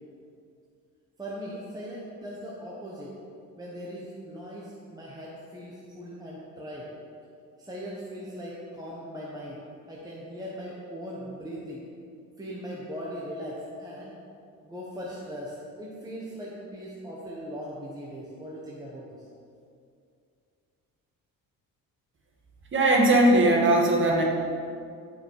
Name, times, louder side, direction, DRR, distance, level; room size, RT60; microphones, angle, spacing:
voice 1, 1.2-3.1 3.6-6.9 7.6-9.6 9.9-11.9 12.4-14.1 14.6-19.3, equal, 10° right, -5 dB, 1.4 m, -39 dB
voice 2, 22.7-24.2, right 1 dB, 35° right, -1 dB, 2.0 m, -19 dB
15.0 x 5.9 x 4.9 m, 2.4 s
cardioid pair, 130°, 35 cm